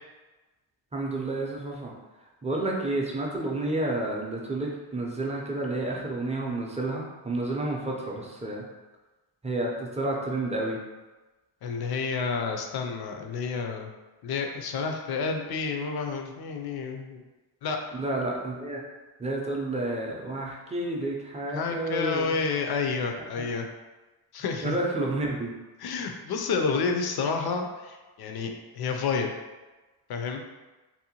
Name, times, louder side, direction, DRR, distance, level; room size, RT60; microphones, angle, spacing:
voice 1, 0.9-1.9 2.4-8.6 9.4-10.8 17.9-18.8 19.2-22.3 23.4-23.5 24.6-25.5, right 2 dB, 15° right, -2 dB, 0.5 m, -30 dB
voice 2, 11.6-13.9 14.2-17.2 17.6-17.8 21.5-23.7 24.3-24.8 25.8-29.3 30.1-30.4, left 5 dB, 55° left, 3 dB, 0.5 m, -30 dB
2.7 x 2.1 x 2.8 m, 1.2 s
cardioid pair, 85°, 46 cm